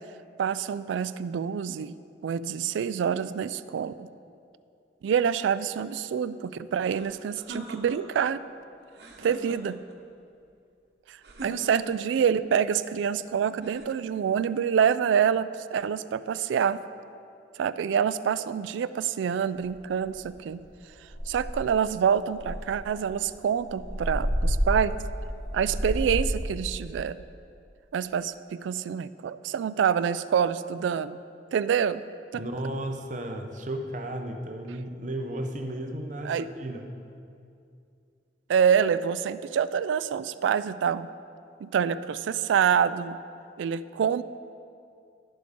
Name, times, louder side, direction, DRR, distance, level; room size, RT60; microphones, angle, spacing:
voice 1, 0.4-1.9 2.2-4.1 5.0-8.4 9.2-9.8 11.1-16.8 17.6-20.6 21.3-24.9 25.5-27.2 27.9-31.2 31.5-32.0 32.3-32.4 36.2-36.4 38.5-41.1 41.6-43.2 43.6-44.2, right 7 dB, 85° right, 15 dB, 0.3 m, -26 dB
sound 1, 6.9-8.3 8.9-10.0 11.2-12.2 13.6-14.5, right 1 dB, 65° right, 1.1 m, -42 dB
sound 2, 19.6-19.7 20.1-20.4 20.7-20.8 21.1-21.8 22.3-26.5, equal, 35° left, 1.9 m, -30 dB
voice 2, 32.3-36.9, right 1 dB, 40° right, 5 dB, 0.7 m, -34 dB
11.5 x 7.6 x 3.7 m, 2.5 s
head